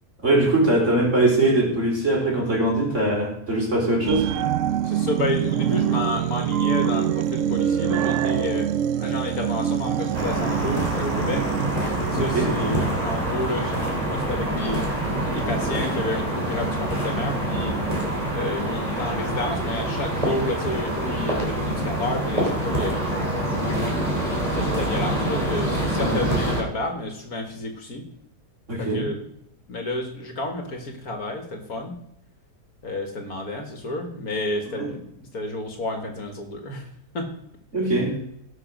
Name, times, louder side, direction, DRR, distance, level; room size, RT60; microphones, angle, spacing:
voice 1, 0.2-4.3 12.1-12.5 26.0-26.2 28.7-29.0 34.7-34.9 37.7-38.2, right 2 dB, 45° right, -2 dB, 4.5 m, -21 dB
sound 1, 4.1-15.1 15.5-15.6, right 9 dB, 65° right, 0.8 m, -26 dB
voice 2, 4.8-8.7 9.0-11.5 12.1-14.9 15.3-17.8 18.3-23.9 24.4-28.1 28.8-29.3 29.7-31.9 32.8-36.9 37.1-37.3, left 2 dB, 65° left, 4 dB, 2.2 m, -30 dB
sound 2, 10.1-26.6, right 1 dB, 20° right, 3.1 m, -26 dB
17.5 x 6.2 x 6.1 m, 0.74 s
omnidirectional pair, 1.7 m